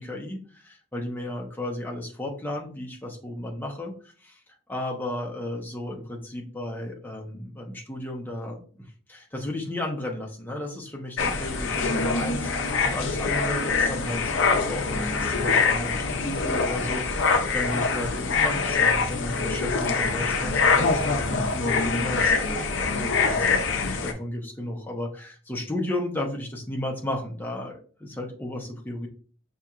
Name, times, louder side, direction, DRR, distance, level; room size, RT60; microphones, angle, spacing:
voice 1, 0.0-4.4 4.7-8.6 9.1-23.4 23.6-29.1, left 1 dB, 10° left, -1 dB, 0.7 m, -34 dB
sound 1, 11.2-24.1, left 4 dB, 60° left, 0.6 m, -24 dB
5.8 x 2.8 x 2.4 m, 0.41 s
head